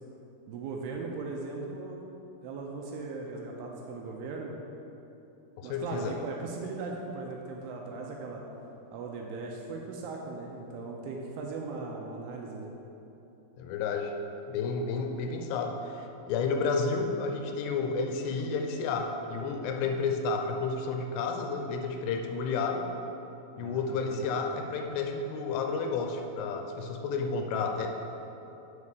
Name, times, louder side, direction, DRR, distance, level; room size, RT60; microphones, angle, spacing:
voice 1, 0.5-2.0 2.4-4.5 5.6-8.4 8.9-12.7 23.6-24.2, right 3 dB, 80° right, 0 dB, 2.4 m, -38 dB
voice 2, 5.6-6.2 13.6-14.2 14.4-22.9 23.6-27.9, left 4 dB, 85° left, 4 dB, 2.7 m, -31 dB
7.2 x 4.2 x 6.6 m, 2.9 s
omnidirectional pair, 4.9 m